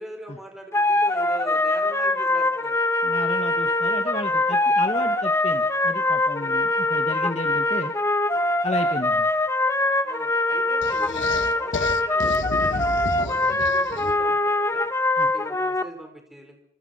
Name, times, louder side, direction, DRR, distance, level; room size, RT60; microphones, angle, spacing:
voice 1, 0.0-2.8 6.3-6.6 10.0-14.9 15.2-16.7, equal, ahead, 4 dB, 4.5 m, -42 dB
sound 1, 0.7-15.8, left 2 dB, 15° left, 1.1 m, -23 dB
voice 2, 3.0-7.9 8.6-9.3 15.2-15.3, left 1 dB, 35° left, 5 dB, 1.6 m, -33 dB
sound 2, 10.8-14.4, left 3 dB, 80° left, 1.3 m, -32 dB
27.5 x 27.5 x 5.7 m, 0.72 s
head